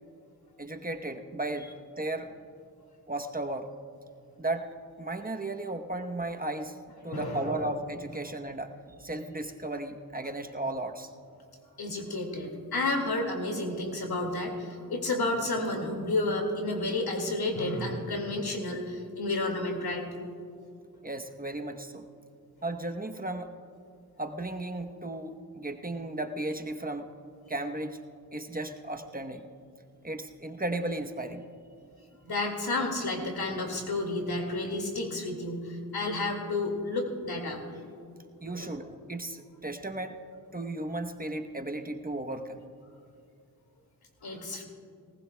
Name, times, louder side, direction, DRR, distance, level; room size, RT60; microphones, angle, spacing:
voice 1, 0.6-1.7 2.0-2.3 3.1-3.7 4.4-4.7 5.0-6.8 7.0-11.1 21.0-22.1 22.6-23.5 24.2-27.1 27.5-28.0 28.3-29.5 30.0-31.5 38.4-40.2 40.5-42.6, right 2 dB, 25° right, 5 dB, 0.9 m, -35 dB
voice 2, 7.0-7.5 11.8-20.1 32.2-37.6 38.5-38.7 44.2-44.6, left 2 dB, 80° left, 2 dB, 2.1 m, -31 dB
19.5 x 18.5 x 2.2 m, 2.4 s
cardioid pair, 50°, 37 cm